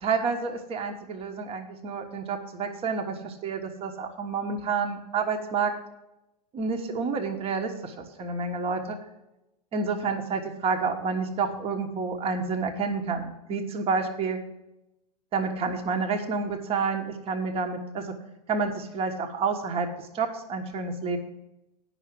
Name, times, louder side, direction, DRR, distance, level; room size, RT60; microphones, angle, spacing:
voice 1, 0.0-5.7 6.5-9.0 9.7-14.4 15.3-18.1 18.5-21.2, right 4 dB, 25° right, 4 dB, 1.2 m, -29 dB
9.1 x 5.9 x 7.5 m, 0.92 s
hypercardioid pair, 115°, 21 cm